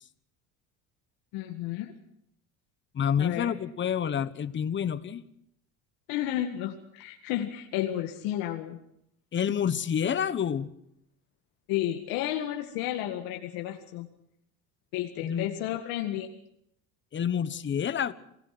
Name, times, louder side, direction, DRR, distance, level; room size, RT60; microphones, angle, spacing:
voice 1, 1.3-1.9 3.2-3.5 6.1-8.8 11.7-14.1 14.9-16.3, left 12 dB, 75° left, 3 dB, 2.0 m, -32 dB
voice 2, 2.9-5.2 9.3-10.7 15.2-15.5 17.1-18.1, left 8 dB, 30° left, 14 dB, 1.3 m, -28 dB
27.5 x 17.5 x 6.0 m, 0.75 s
supercardioid pair, 110°, 36 cm